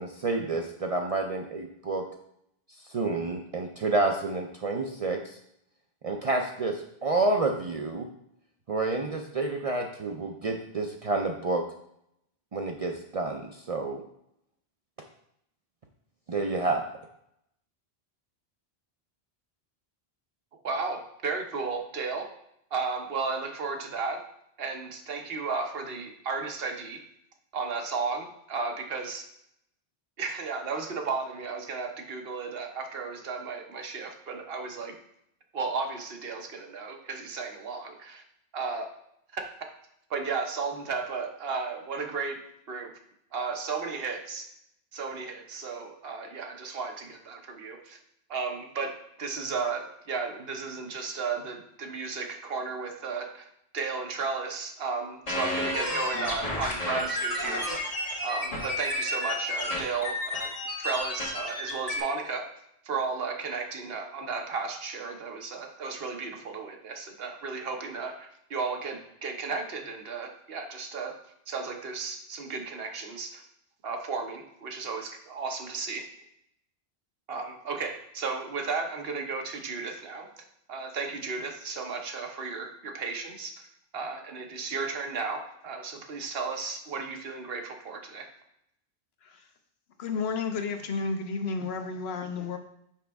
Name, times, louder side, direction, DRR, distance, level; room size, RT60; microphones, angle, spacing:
voice 1, 0.0-2.0 2.9-5.4 6.0-8.1 8.7-11.6 12.5-14.0 16.3-16.8, right 3 dB, 50° right, 2 dB, 0.5 m, -29 dB
voice 2, 20.6-22.3 22.7-24.2 24.6-27.0 27.5-29.3 30.2-35.0 35.5-38.2 38.5-38.9 39.3-39.4 40.1-42.4 42.7-42.9 43.3-44.5 44.9-48.0 48.3-48.9 49.2-53.5 53.7-57.9 58.2-60.5 60.8-62.4 62.8-71.1 71.5-73.4 73.8-76.1 77.3-80.3 80.7-83.7 83.9-88.3, right 4 dB, 65° right, 4 dB, 1.0 m, -34 dB
sound 1, 55.3-62.0, left 1 dB, 35° left, 1.3 m, -31 dB
voice 3, 90.0-92.6, left 4 dB, 75° left, 6 dB, 1.0 m, -32 dB
5.9 x 5.1 x 3.4 m, 0.76 s
omnidirectional pair, 1.1 m